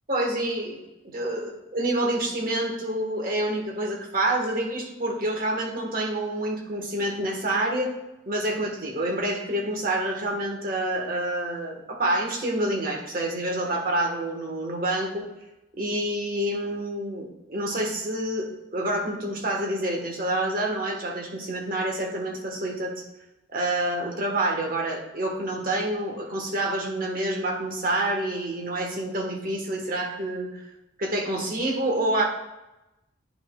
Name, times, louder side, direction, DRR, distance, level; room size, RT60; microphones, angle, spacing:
voice 1, 0.1-0.8 1.0-7.9 8.3-15.2 15.8-18.5 18.7-23.0 23.5-30.6 31.0-32.2, right 1 dB, 45° right, 1 dB, 1.3 m, -27 dB
9.5 x 5.7 x 2.3 m, 0.96 s
head